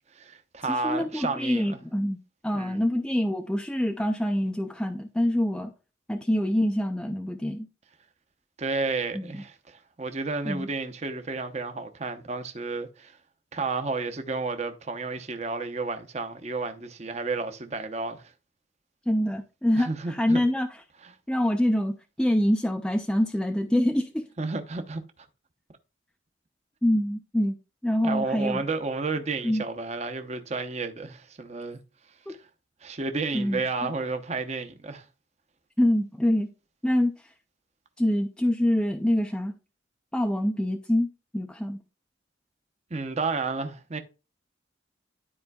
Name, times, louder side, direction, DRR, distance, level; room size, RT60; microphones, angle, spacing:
voice 1, 0.1-1.8 2.5-2.8 8.6-13.2 13.5-18.3 19.8-20.4 21.0-21.1 24.4-25.0 28.0-31.8 32.3-32.4 32.8-35.0 42.9-44.0, right 3 dB, 35° right, 0.7 m, -31 dB
voice 2, 0.7-2.2 2.4-5.7 6.1-7.7 9.1-9.4 10.5-10.7 19.1-20.7 21.3-24.2 26.8-27.6 27.8-28.6 29.4-29.6 33.3-33.9 35.8-36.5 36.8-37.1 38.0-39.5 40.1-41.1 41.3-41.8, left 1 dB, 5° left, 0.4 m, -25 dB
12.0 x 4.4 x 2.3 m
head